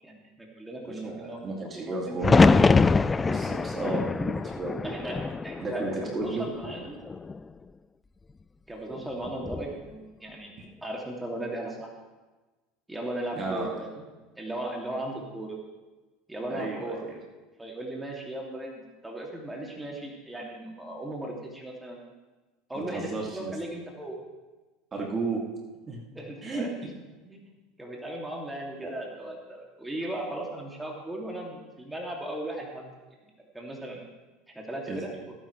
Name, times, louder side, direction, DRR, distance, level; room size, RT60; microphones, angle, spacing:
voice 1, 0.0-1.6 1.9-2.6 4.8-7.0 8.7-10.5 10.8-11.9 12.9-13.9 14.3-15.6 16.3-17.0 17.6-22.0 22.7-24.2 26.1-26.7 27.2-27.5 27.8-32.9 33.5-34.0 34.5-35.1, right 1 dB, 10° right, -1 dB, 2.7 m, -37 dB
voice 2, 0.9-2.4 3.2-5.0 5.6-6.5 13.3-13.8 16.5-17.2 22.7-23.6 24.9-25.4 25.9-26.1 26.4-26.7 28.8-28.9 34.9-35.0, right 3 dB, 30° right, -1 dB, 2.5 m, -33 dB
sound 1, 2.2-6.3 6.6-7.4 9.3-9.7, left 4 dB, 20° left, 0.3 m, -23 dB
17.0 x 9.8 x 3.3 m, 1.2 s
hypercardioid pair, 80°, 0 cm